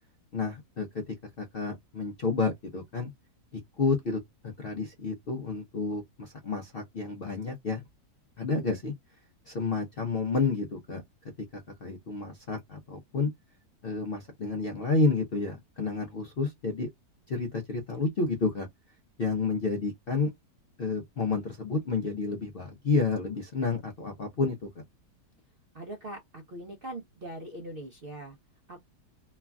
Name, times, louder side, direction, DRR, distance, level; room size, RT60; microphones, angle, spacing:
voice 1, 0.3-3.1 3.5-7.8 8.4-8.9 9.5-11.0 11.5-13.3 13.8-16.9 17.3-18.7 19.2-20.3 20.8-24.7, left 4 dB, 65° left, 0.5 m, -30 dB
voice 2, 25.7-28.4 28.7-28.8, right 1 dB, 60° right, 0.5 m, -41 dB
3.2 x 2.3 x 2.2 m
omnidirectional pair, 1.8 m